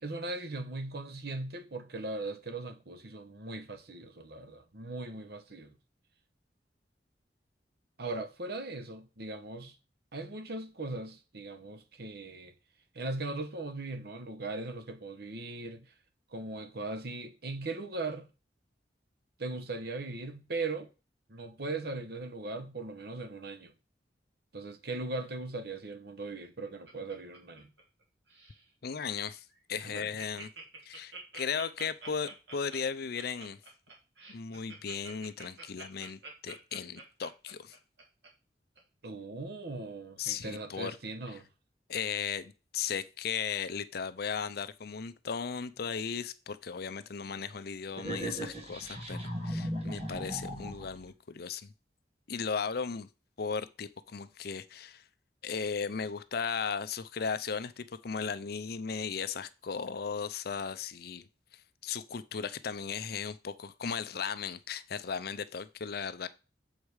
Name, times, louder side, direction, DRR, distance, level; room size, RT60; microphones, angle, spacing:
voice 1, 0.0-5.7 8.0-9.7 10.1-12.5 12.9-15.9 16.3-18.3 19.4-20.9 21.3-23.7 24.5-27.7 29.8-30.1 39.0-41.4, right 2 dB, 65° right, 1.1 m, -39 dB
Laughter, 26.2-28.0 28.3-28.6 29.1-29.2 29.5-29.6 29.9-38.3 38.8-38.9, right 3 dB, 85° right, 2.7 m, -48 dB
voice 2, 28.8-30.5 30.8-33.6 34.3-37.7 40.2-41.0 41.9-51.7 52.3-53.1 53.4-55.0 55.4-66.3, left 6 dB, 60° left, 0.6 m, -36 dB
sound 1, 48.0-51.1, equal, 35° right, 2.0 m, -37 dB
7.3 x 5.0 x 4.8 m
head